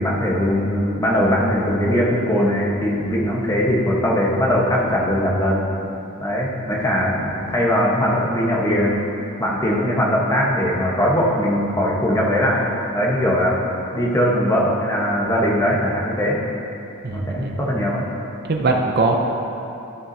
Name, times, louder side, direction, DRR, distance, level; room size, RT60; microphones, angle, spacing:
voice 1, 0.0-5.7 6.2-9.0 9.4-12.7 12.9-13.6 13.9-16.4 17.1-18.0, equal, 15° left, -4 dB, 1.0 m, -20 dB
voice 2, 17.0-17.6 18.5-19.2, right 3 dB, 45° right, 2 dB, 0.5 m, -21 dB
12.5 x 7.1 x 2.7 m, 2.9 s
head